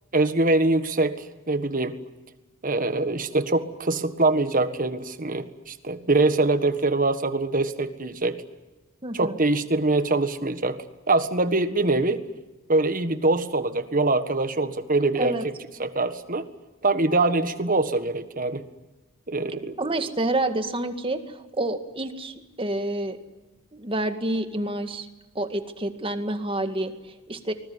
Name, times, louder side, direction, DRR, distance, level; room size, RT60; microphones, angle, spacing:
voice 1, 0.1-1.2 1.5-2.0 2.6-8.4 9.1-10.8 11.1-12.2 12.7-15.5 15.8-16.4 16.8-18.7 19.3-19.8, right 2 dB, 40° right, 10 dB, 1.6 m, -23 dB
voice 2, 9.0-9.4 15.2-15.4 19.8-23.2 23.7-25.1 25.4-27.5, right 1 dB, 25° right, 8 dB, 2.0 m, -28 dB
25.0 x 21.0 x 9.7 m, 1.1 s
head